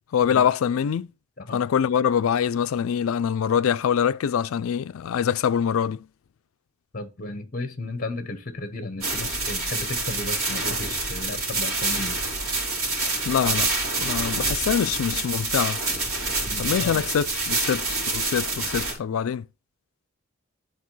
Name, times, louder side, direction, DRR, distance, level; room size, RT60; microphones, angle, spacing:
voice 1, 0.1-1.1 1.5-6.0 13.3-13.7 14.0-15.8 16.6-19.4, left 8 dB, 70° left, 0.3 m, -24 dB
voice 2, 6.9-12.2 16.5-17.0, left 2 dB, 40° left, 0.8 m, -34 dB
sound 1, 9.0-18.9, right 3 dB, 80° right, 2.8 m, -27 dB
10.5 x 4.0 x 3.1 m
head